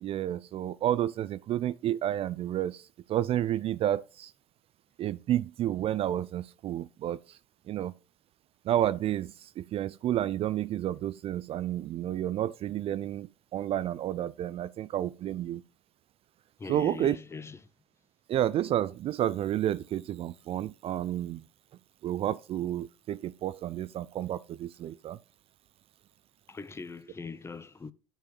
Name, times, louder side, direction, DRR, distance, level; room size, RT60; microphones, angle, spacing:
voice 1, 0.0-2.8 3.1-4.3 5.0-7.2 7.7-7.9 8.7-15.6 16.7-17.2 18.3-21.4 22.0-25.2, right 12 dB, 40° right, 0.4 m, -30 dB
voice 2, 16.6-17.7 26.5-27.9, left 4 dB, 15° left, 0.7 m, -41 dB
9.0 x 4.6 x 5.4 m
hypercardioid pair, 70°, 15 cm